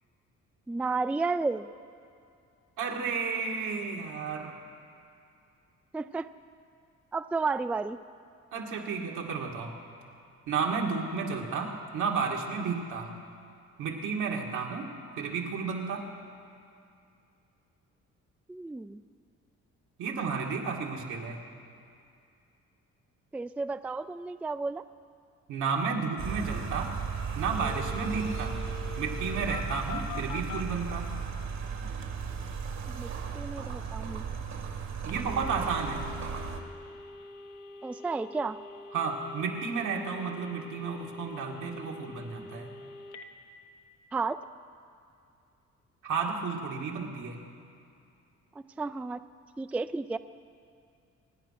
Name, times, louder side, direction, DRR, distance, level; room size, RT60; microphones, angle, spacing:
voice 1, 0.7-1.7 5.9-6.3 7.1-8.0 18.5-19.0 23.3-24.8 32.9-33.1 33.3-34.3 37.8-38.6 44.1-44.4 48.6-49.2 49.6-50.2, right 4 dB, 5° right, 12 dB, 0.3 m, -32 dB
voice 2, 2.8-4.6 8.5-9.7 10.5-13.1 13.8-14.9 15.2-16.0 20.0-21.4 25.5-27.0 27.4-28.6 29.0-31.1 35.0-36.1 38.9-42.7 46.0-47.4, right 5 dB, 80° right, 0 dB, 2.4 m, -32 dB
sound 1, 26.2-36.6, right 6 dB, 65° right, 1.9 m, -36 dB
Telephone, 27.5-30.6 35.1-43.3, left 4 dB, 80° left, 1.1 m, -44 dB
24.5 x 9.8 x 5.9 m, 2.5 s
cardioid pair, 90°, 30 cm